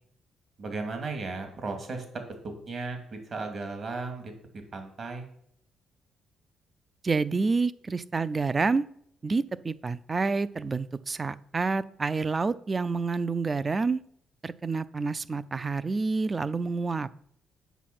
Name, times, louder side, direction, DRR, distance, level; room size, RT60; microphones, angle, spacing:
voice 1, 0.6-4.3 4.7-5.3, right 3 dB, 50° right, 5 dB, 2.3 m, -35 dB
voice 2, 7.0-8.8 9.2-14.0 14.4-17.1, right 4 dB, 30° right, 17 dB, 0.4 m, -28 dB
8.2 x 6.3 x 6.0 m, 0.68 s
cardioid pair, 90°, 0 cm